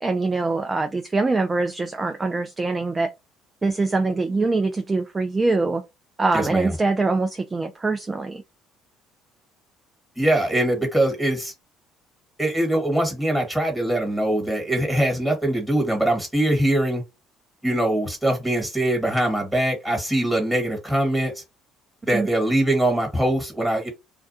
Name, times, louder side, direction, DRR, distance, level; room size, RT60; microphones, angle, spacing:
voice 1, 0.0-3.1 3.6-5.8 6.2-8.4 22.1-22.3, right 3 dB, 25° right, 0.4 m, -23 dB
voice 2, 6.3-6.7 10.2-11.5 12.4-17.0 17.6-21.4 22.0-23.9, right 1 dB, ahead, 1.5 m, -22 dB
2.3 x 2.3 x 2.7 m
supercardioid pair, 75°, 0 cm